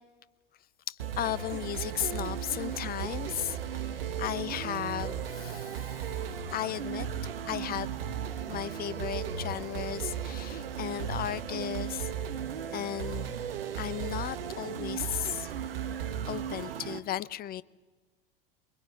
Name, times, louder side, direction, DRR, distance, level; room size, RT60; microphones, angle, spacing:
voice 1, 0.9-6.1 6.5-7.1 7.5-7.9 8.5-12.1 12.7-13.3 13.7-15.5 16.3-17.6, left 12 dB, 30° left, 0.8 m, -35 dB
sound 1, 1.0-17.0, right 8 dB, 75° right, 1.5 m, -36 dB
23.5 x 22.5 x 9.5 m
figure-of-eight pair, 80°, 30 cm